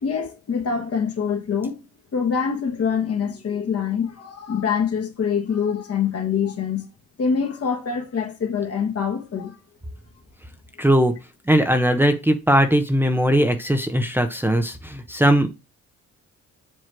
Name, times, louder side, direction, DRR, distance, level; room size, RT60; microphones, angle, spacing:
voice 1, 0.0-1.8 2.1-6.9 7.2-9.6, left 6 dB, 50° left, 1.8 m, -25 dB
voice 2, 10.8-11.1 11.5-15.5, equal, 5° right, 0.8 m, -19 dB
7.7 x 3.1 x 6.0 m
cardioid pair, 90°, 30 cm